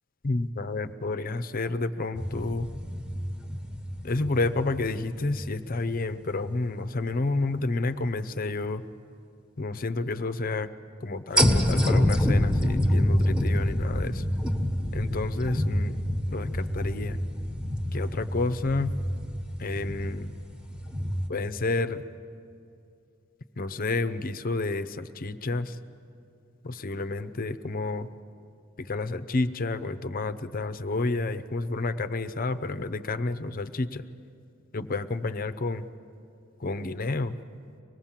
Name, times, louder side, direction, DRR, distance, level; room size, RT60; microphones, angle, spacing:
voice 1, 0.2-2.7 4.0-8.8 9.6-10.7 11.0-14.2 14.9-16.0 16.3-17.2 17.9-19.0 19.6-20.3 21.3-22.0 23.6-25.8 26.6-28.1 28.8-34.0 34.7-35.9 36.6-37.3, left 3 dB, 45° left, 12 dB, 0.7 m, -30 dB
sound 1, 2.1-5.9 6.4-6.5 11.4-21.3, equal, 5° right, 1.4 m, -27 dB
24.5 x 19.5 x 7.4 m, 2.5 s
head